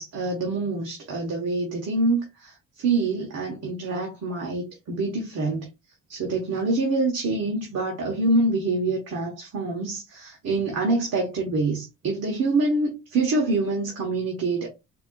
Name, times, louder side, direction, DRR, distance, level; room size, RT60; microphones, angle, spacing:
voice 1, 0.0-5.7 6.1-14.7, right 2 dB, 55° right, 1.5 m, -26 dB
4.6 x 2.9 x 2.5 m
cardioid pair, 90°, 30 cm